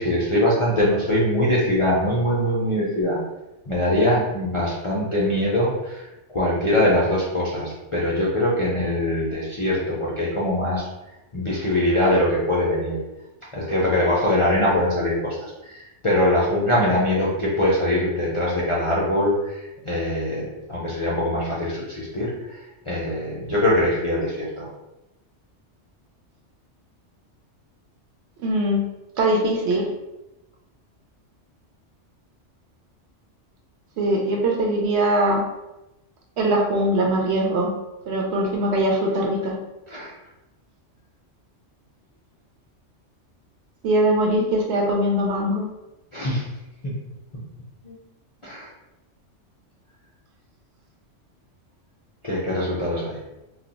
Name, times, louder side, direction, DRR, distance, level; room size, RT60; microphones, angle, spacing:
voice 1, 0.0-3.2 3.7-6.1 6.3-10.9 11.3-13.0 13.5-24.7 39.9-40.1 46.1-46.4 46.8-46.9 47.8-48.0 48.4-48.7 52.2-53.2, left 1 dB, 45° left, -7 dB, 0.4 m, -22 dB
voice 2, 28.4-28.8 29.2-29.9 34.0-35.4 36.4-37.7 38.1-39.6 43.8-45.7, right 1 dB, 70° right, 0 dB, 0.9 m, -21 dB
2.4 x 2.2 x 3.9 m, 0.95 s
omnidirectional pair, 1.2 m